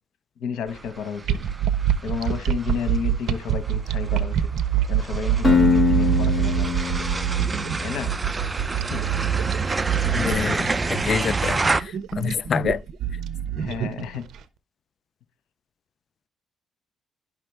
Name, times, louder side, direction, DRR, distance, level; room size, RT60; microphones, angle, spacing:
voice 1, 0.4-1.3 2.0-4.5 4.9-6.7 7.8-8.1 8.8-9.0 13.6-14.2, left 7 dB, 80° left, 1.5 m, -31 dB
sound 1, 0.7-11.8, right 3 dB, 25° right, 0.5 m, -29 dB
sound 2, 1.2-14.4, right 10 dB, 70° right, 0.7 m, -25 dB
Acoustic guitar, 5.4-8.5, left 5 dB, 30° left, 2.0 m, -23 dB
voice 2, 10.1-12.8, left 7 dB, 50° left, 0.4 m, -27 dB
11.0 x 5.9 x 3.5 m
cardioid pair, 90°, 0 cm